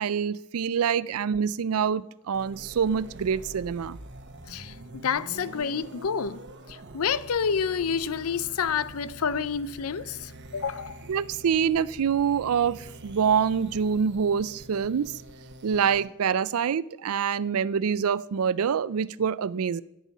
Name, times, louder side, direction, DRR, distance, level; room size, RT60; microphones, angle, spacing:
voice 1, 0.0-4.0 11.1-15.1 15.6-19.8, right 7 dB, 80° right, 0.4 m, -26 dB
sound 1, 2.3-16.1, right 2 dB, 55° right, 1.0 m, -45 dB
voice 2, 4.5-6.4 6.7-11.0, left 6 dB, 80° left, 0.5 m, -29 dB
11.0 x 7.3 x 8.3 m
head